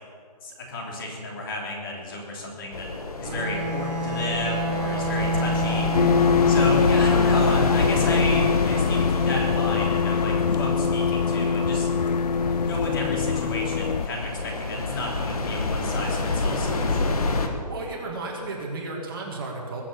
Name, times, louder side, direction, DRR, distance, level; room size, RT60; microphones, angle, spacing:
voice 1, 0.4-2.9 3.2-5.9 6.5-11.9 12.5-17.2, left 1 dB, 30° left, -2 dB, 3.2 m, -32 dB
sound 1, 2.7-17.5, left 3 dB, 60° left, 1.9 m, -28 dB
Bowed string instrument, 3.2-7.1, right 1 dB, 85° right, 2.3 m, -29 dB
sound 2, 5.9-14.1, left 5 dB, 85° left, 0.6 m, -23 dB
voice 2, 17.7-19.8, right 3 dB, 35° right, -1 dB, 2.5 m, -33 dB
22.0 x 7.4 x 7.1 m, 2.1 s
hypercardioid pair, 170°, 21 cm